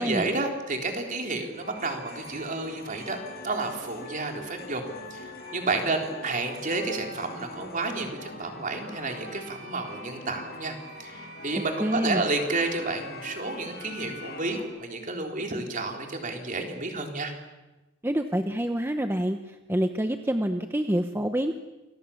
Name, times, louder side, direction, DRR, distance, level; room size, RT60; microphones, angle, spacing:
voice 1, 0.0-3.2 3.4-10.7 11.0-17.3, right 3 dB, 40° right, 3 dB, 3.8 m, -31 dB
sound 1, 1.5-14.6, left 1 dB, 50° left, 4.7 m, -42 dB
voice 2, 11.8-12.2 18.0-21.5, equal, 10° right, 7 dB, 0.9 m, -27 dB
28.5 x 23.5 x 7.2 m, 1.1 s
head